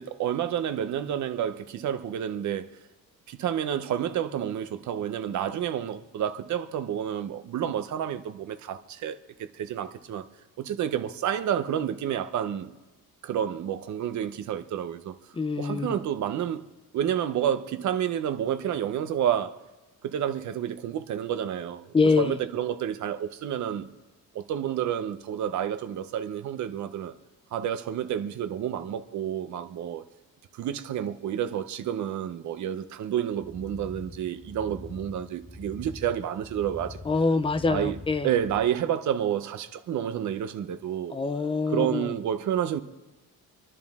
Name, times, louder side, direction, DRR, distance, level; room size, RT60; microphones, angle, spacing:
voice 1, 0.0-2.7 3.3-10.2 10.6-12.7 13.2-15.2 15.6-16.6 16.9-19.5 20.0-21.9 22.2-23.9 24.3-27.1 27.5-30.0 30.5-37.0 37.7-38.0 38.2-41.2 41.7-42.8, right 10 dB, 55° right, 0.8 m, -29 dB
voice 2, 15.3-15.9 21.9-22.4 37.0-38.3 41.1-42.1, left 4 dB, 15° left, 0.4 m, -25 dB
sound 1, 33.3-38.6, left 1 dB, ahead, 1.0 m, -44 dB
26.5 x 11.0 x 3.6 m
cardioid pair, 175°, 35 cm